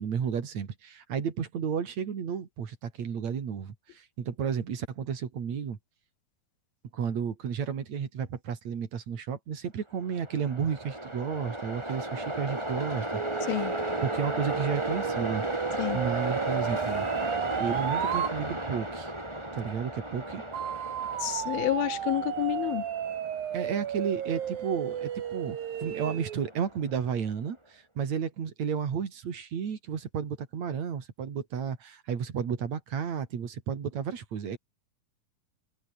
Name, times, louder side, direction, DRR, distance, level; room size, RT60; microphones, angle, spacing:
voice 1, 0.0-5.8 6.9-13.7 14.0-15.4 15.9-17.3 17.6-19.1 19.5-20.4 23.5-34.6, right 7 dB, 50° right, 3.7 m, -32 dB
Train, 10.0-27.2, right 1 dB, 5° right, 3.7 m, -35 dB
sound 1, 13.1-18.3 20.5-26.4, right 10 dB, 70° right, 3.8 m, -34 dB
voice 2, 21.2-22.8, left 18 dB, 85° left, 2.6 m, -29 dB
omnidirectional pair, 4.3 m